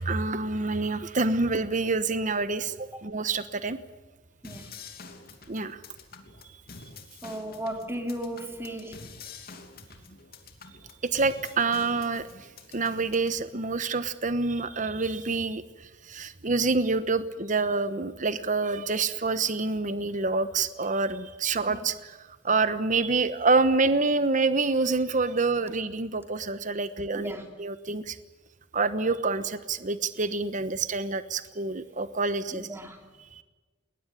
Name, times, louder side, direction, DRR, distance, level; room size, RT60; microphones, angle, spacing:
voice 1, 0.0-3.8 5.5-5.8 11.0-12.3 12.7-15.6 16.1-22.2 22.4-28.2 28.7-32.7 33.3-33.4, right 3 dB, 45° right, 12 dB, 1.1 m, -27 dB
sound 1, 4.4-13.4, left 4 dB, 55° left, 2.8 m, -47 dB
voice 2, 7.2-9.0 21.7-21.9 27.1-27.5 32.5-33.0, right 1 dB, 15° right, 4 dB, 3.0 m, -36 dB
20.5 x 20.0 x 10.0 m, 1.2 s
head